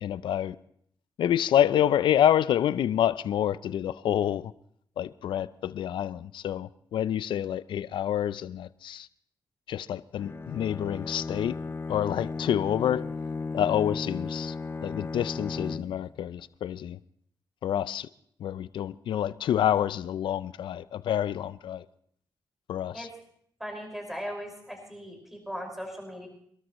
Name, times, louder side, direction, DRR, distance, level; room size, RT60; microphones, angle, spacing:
voice 1, 0.0-0.6 1.2-4.4 5.0-9.1 9.7-11.6 11.9-13.0 13.5-14.5 14.8-17.0 17.6-18.1 18.4-21.8 22.7-23.1, left 10 dB, 80° left, 0.5 m, -27 dB
Bowed string instrument, 10.2-16.2, left 4 dB, 30° left, 0.5 m, -35 dB
voice 2, 23.6-26.3, equal, 5° right, 5.3 m, -38 dB
27.0 x 13.0 x 3.1 m
cardioid pair, 65°, 8 cm